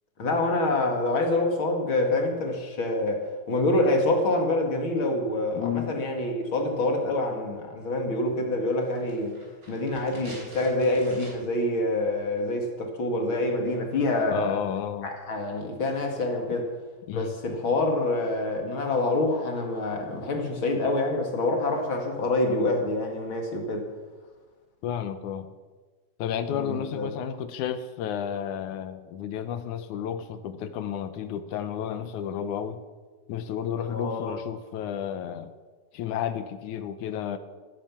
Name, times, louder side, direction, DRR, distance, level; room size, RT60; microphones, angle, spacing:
voice 1, 0.2-9.4 9.7-14.6 15.0-16.7 17.1-23.9 26.5-27.1 33.9-34.4, left 2 dB, 40° left, 3 dB, 2.6 m, -26 dB
voice 2, 5.5-6.0 14.3-15.1 17.1-17.4 24.8-25.5 26.2-32.8 33.3-35.5 35.9-37.4, left 9 dB, 70° left, 11 dB, 2.2 m, -32 dB
sound 1, 8.8-11.7 11.9-12.0, right 1 dB, 25° right, 4.1 m, -47 dB
17.5 x 10.0 x 7.3 m, 1.4 s
omnidirectional pair, 3.9 m